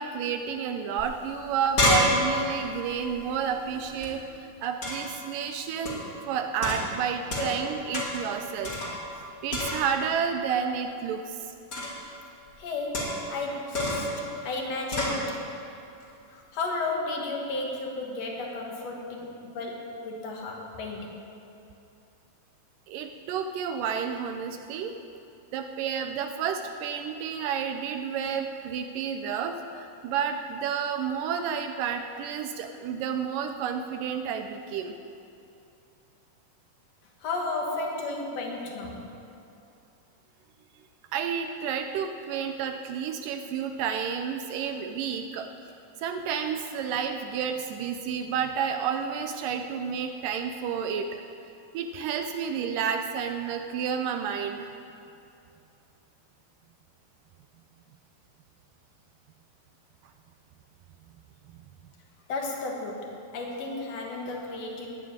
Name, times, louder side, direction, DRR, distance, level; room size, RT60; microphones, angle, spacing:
voice 1, 0.0-8.7 9.4-11.5 22.9-25.0 25.5-35.0 41.1-45.5 46.0-51.2 51.7-54.7, right 7 dB, 80° right, 6 dB, 2.0 m, -30 dB
sound 1, 1.0-1.1 1.4-4.1 4.8-5.2 5.9-6.1 6.6-7.7 7.9-8.3 8.6-9.2 9.5-10.1 11.7-12.1 12.9-13.4 13.7-14.2 14.9-15.2, left 1 dB, 30° left, 2.6 m, -29 dB
voice 2, 12.6-15.4 16.3-21.1 37.2-39.1 62.3-64.9, left 3 dB, 55° left, 1 dB, 2.1 m, -33 dB
9.7 x 9.6 x 9.4 m, 2.7 s
omnidirectional pair, 4.2 m